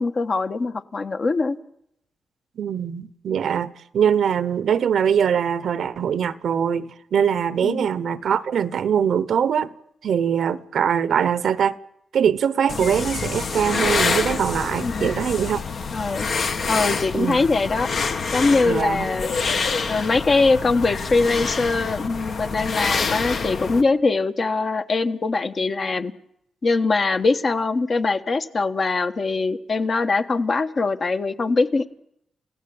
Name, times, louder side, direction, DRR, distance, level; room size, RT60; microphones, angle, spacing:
voice 1, 0.0-1.6 7.6-7.9 12.7-12.8 14.8-15.1 15.9-16.3 16.7-17.9 18.3-19.3 19.9-26.1 26.6-31.9, left 3 dB, 45° left, 1.4 m, -22 dB
voice 2, 2.6-9.7 10.0-11.8 12.1-15.6 17.1-17.4 18.6-19.1, right 8 dB, 75° right, 1.0 m, -22 dB
sound 1, 12.7-23.8, left 4 dB, 65° left, 2.1 m, -26 dB
29.0 x 16.5 x 8.7 m
wide cardioid pair, 115°, 0 cm